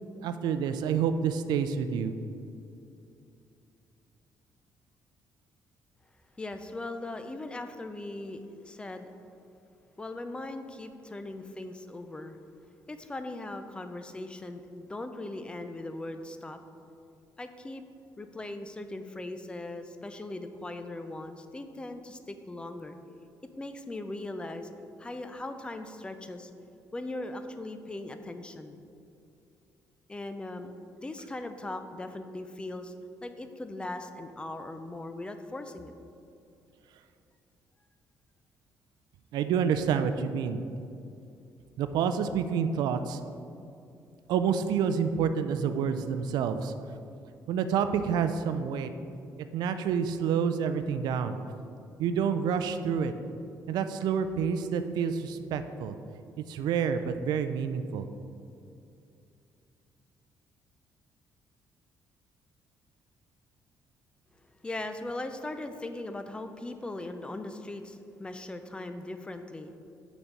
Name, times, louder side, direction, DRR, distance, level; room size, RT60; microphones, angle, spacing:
voice 1, 0.2-2.1 39.3-40.6 41.8-43.2 44.3-46.7 47.5-48.9 49.5-51.4 52.0-53.1 53.7-55.9 56.4-58.1, right 7 dB, 85° right, 10 dB, 0.4 m, -28 dB
voice 2, 6.4-9.1 10.0-12.4 12.9-16.6 17.4-17.8 18.2-23.0 23.6-24.7 25.0-26.5 26.9-28.8 30.1-32.9 33.2-35.9 64.6-69.7, left 2 dB, 15° left, 8 dB, 0.4 m, -39 dB
7.4 x 4.1 x 4.5 m, 2.6 s
cardioid pair, 135°, 7 cm